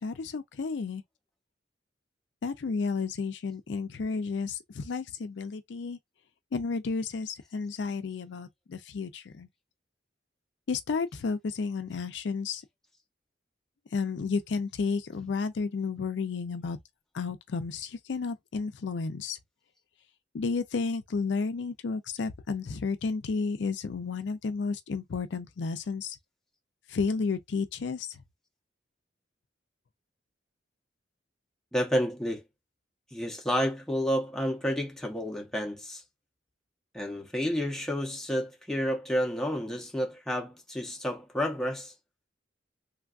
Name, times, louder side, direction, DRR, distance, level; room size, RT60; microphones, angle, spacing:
voice 1, 0.0-1.0 2.4-6.0 6.5-9.5 10.7-12.6 13.9-16.8 17.1-19.4 20.3-26.2 26.9-28.2, left 4 dB, 70° left, 0.4 m, -32 dB
voice 2, 31.7-32.4 33.1-36.0 36.9-41.9, equal, 5° left, 0.7 m, -30 dB
3.2 x 2.3 x 2.4 m
head